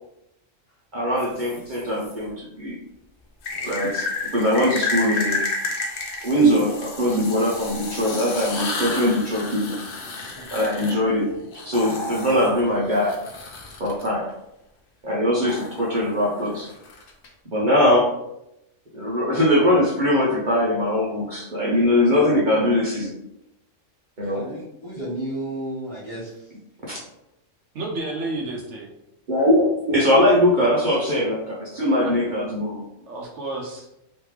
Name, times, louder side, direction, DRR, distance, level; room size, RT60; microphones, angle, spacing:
voice 1, 0.9-2.8 3.6-4.0 4.3-5.4 6.2-9.8 10.5-11.3 11.7-13.2 13.8-14.3 15.0-16.7 17.5-18.1 18.9-23.1 24.2-24.4 26.9-27.0 29.3-32.8, left 1 dB, 45° right, -5 dB, 0.9 m, -21 dB
sound 1, 1.2-2.1 3.4-14.1 15.5-17.3, left 3 dB, 50° left, 0.8 m, -31 dB
voice 2, 3.5-3.8 10.2-10.4 24.3-26.3, right 1 dB, 25° left, -8 dB, 1.2 m, -33 dB
voice 3, 27.7-28.9 31.8-32.2 33.1-33.9, right 2 dB, 70° right, 1 dB, 0.9 m, -31 dB
3.5 x 3.1 x 3.1 m, 0.84 s
omnidirectional pair, 1.3 m